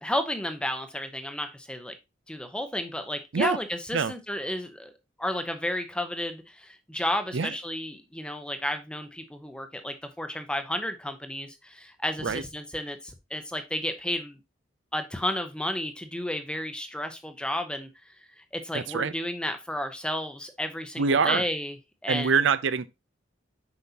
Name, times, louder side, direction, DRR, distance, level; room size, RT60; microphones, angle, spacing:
voice 1, 0.0-2.0 2.3-4.9 5.2-14.4 14.9-17.9 18.4-21.8 22.0-22.5, left 1 dB, 5° left, 0.7 m, -32 dB
voice 2, 18.7-19.1 21.0-21.4 22.1-22.9, right 5 dB, 70° right, 0.5 m, -24 dB
7.9 x 5.4 x 2.8 m
head